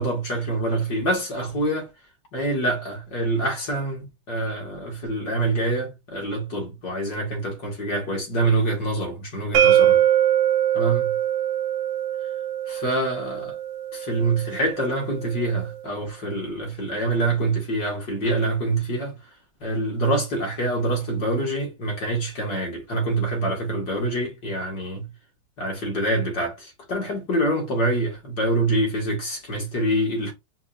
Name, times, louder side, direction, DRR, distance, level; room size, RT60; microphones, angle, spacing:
voice 1, 0.0-1.9 2.3-10.0 10.8-11.1 12.7-13.6 13.9-19.2 19.6-25.1 25.6-30.3, right 2 dB, 50° left, 1.9 m, -25 dB
sound 1, 9.5-15.3, right 10 dB, 75° right, 1.3 m, -22 dB
5.2 x 2.4 x 2.5 m
omnidirectional pair, 2.3 m